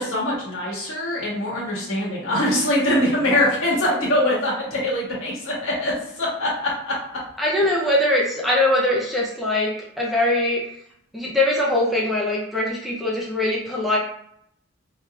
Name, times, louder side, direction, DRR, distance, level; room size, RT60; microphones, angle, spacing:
voice 1, 0.0-6.9, left 1 dB, 80° left, -6 dB, 1.4 m, -23 dB
voice 2, 7.4-10.6 11.1-14.0, left 1 dB, ahead, -5 dB, 0.5 m, -22 dB
3.4 x 3.0 x 2.3 m, 0.71 s
head